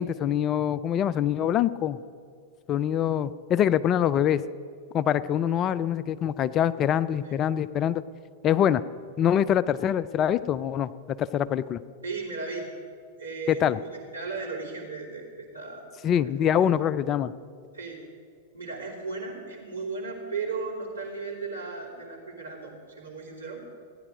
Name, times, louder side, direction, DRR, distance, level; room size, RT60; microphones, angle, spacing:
voice 1, 0.0-2.0 2.7-4.4 4.9-8.0 8.4-8.8 9.2-10.9 11.2-11.8 13.5-13.8 16.0-17.3, left 9 dB, 30° left, 16 dB, 0.4 m, -24 dB
voice 2, 12.0-12.7 13.2-15.9 16.2-16.3 17.7-18.0 18.5-23.6, right 4 dB, 85° right, -4 dB, 2.8 m, -36 dB
15.5 x 9.8 x 5.1 m, 2.1 s
figure-of-eight pair, 95°, 0 cm